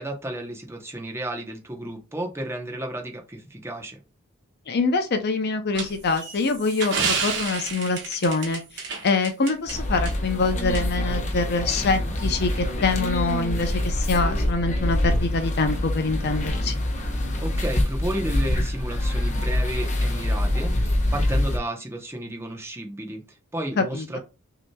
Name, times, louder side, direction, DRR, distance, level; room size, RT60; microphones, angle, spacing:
voice 1, 0.0-4.0 17.4-24.2, right 1 dB, 10° right, 0.8 m, -33 dB
voice 2, 4.7-16.7 23.8-24.2, left 3 dB, 50° left, 0.6 m, -25 dB
sound 1, 5.7-9.7 10.1-10.2 10.7-10.8, right 5 dB, 55° right, 1.2 m, -30 dB
sound 2, 9.7-21.6, left 1 dB, 35° left, 0.9 m, -25 dB
5.9 x 2.9 x 2.2 m
head